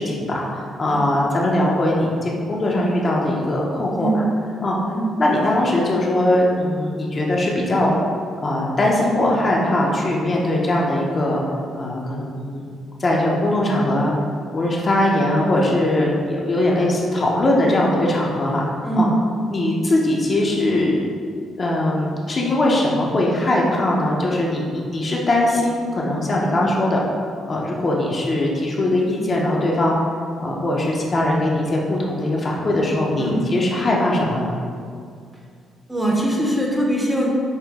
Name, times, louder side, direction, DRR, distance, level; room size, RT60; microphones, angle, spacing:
voice 1, 0.0-4.1 4.6-4.8 5.2-7.9 8.4-11.4 11.7-12.7 13.0-14.1 14.5-18.6 19.0-19.1 19.5-21.0 21.6-27.0 27.5-30.0 30.4-34.6, left 1 dB, 40° left, -3 dB, 0.7 m, -20 dB
voice 2, 4.0-4.4 4.8-5.1 18.8-19.2 33.2-33.5 35.9-37.3, right 1 dB, 5° right, -3 dB, 0.8 m, -21 dB
5.6 x 2.2 x 3.5 m, 2.2 s
cardioid pair, 90°, 0 cm